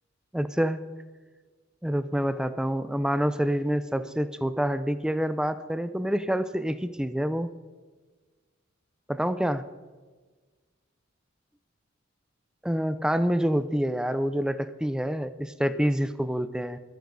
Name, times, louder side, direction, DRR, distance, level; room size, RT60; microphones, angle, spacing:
voice 1, 0.3-0.8 1.8-7.5 9.1-9.6 12.6-16.8, equal, 5° right, 12 dB, 0.5 m, -27 dB
21.5 x 9.4 x 4.1 m, 1.4 s
head